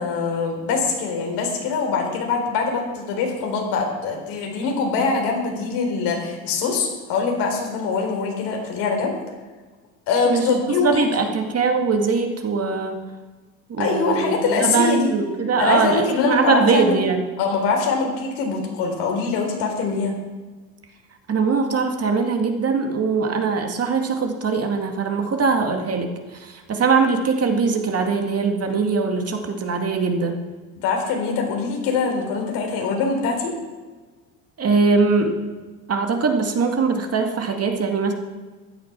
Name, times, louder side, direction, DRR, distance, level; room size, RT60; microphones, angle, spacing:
voice 1, 0.0-9.1 10.1-11.1 13.8-15.1 15.6-17.0 17.4-20.1 30.8-33.5, left 4 dB, 70° left, 2 dB, 4.0 m, -23 dB
voice 2, 10.8-13.0 13.7-17.3 21.3-26.1 26.4-30.3 34.6-35.4 35.9-38.1, right 4 dB, 35° right, 4 dB, 2.2 m, -21 dB
15.5 x 9.6 x 6.0 m, 1.3 s
hypercardioid pair, 80°, 41 cm